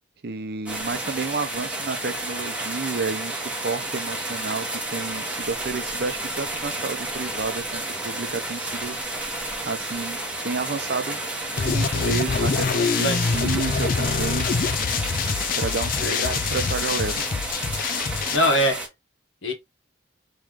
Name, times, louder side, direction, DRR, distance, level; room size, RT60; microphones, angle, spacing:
voice 1, 0.2-9.0 9.7-10.2 10.4-11.2 11.5-14.5 15.6-16.0 16.2-17.2, right 4 dB, 55° right, 0.6 m, -31 dB
sound 1, 0.7-18.9, right 2 dB, 5° right, 1.0 m, -31 dB
sound 2, 11.6-18.4, left 5 dB, 45° left, 0.4 m, -25 dB
voice 2, 13.0-13.4 16.0-16.4 18.3-18.8 19.4-19.5, left 1 dB, 80° left, 1.3 m, -23 dB
3.1 x 3.1 x 3.6 m
head